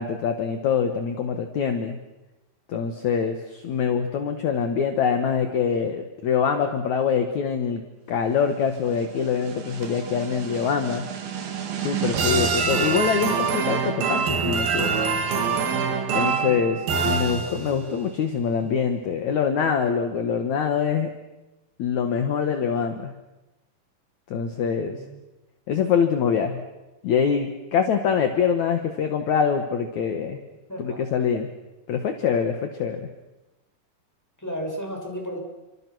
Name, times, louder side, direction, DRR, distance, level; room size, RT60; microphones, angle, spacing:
voice 1, 0.0-2.0 2.7-7.8 8.1-11.0 11.8-14.9 16.1-21.1 21.8-23.1 24.3-25.0 25.7-26.6 27.0-30.4 30.8-31.5 31.9-33.1, left 6 dB, 60° left, 6 dB, 2.6 m, -24 dB
sound 1, 9.0-17.9, right 5 dB, 80° right, 4.2 m, -26 dB
voice 2, 16.3-16.7 17.4-17.8 24.9-25.0 30.7-31.0 34.4-35.4, equal, 5° left, 0 dB, 6.6 m, -34 dB
30.0 x 25.5 x 6.3 m, 1.0 s
omnidirectional pair, 4.2 m